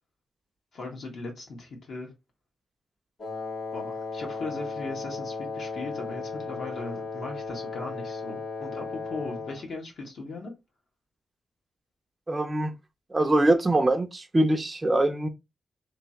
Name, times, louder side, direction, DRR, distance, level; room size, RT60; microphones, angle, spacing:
voice 1, 0.7-2.1 3.7-10.5, left 3 dB, 65° left, 1.4 m, -38 dB
Wind instrument woodwind instrument, 3.2-9.6, left 4 dB, 40° left, 1.7 m, -35 dB
voice 2, 12.3-12.7 13.1-15.3, right 1 dB, 15° right, 0.4 m, -23 dB
3.3 x 3.1 x 2.9 m
wide cardioid pair, 165°, 0 cm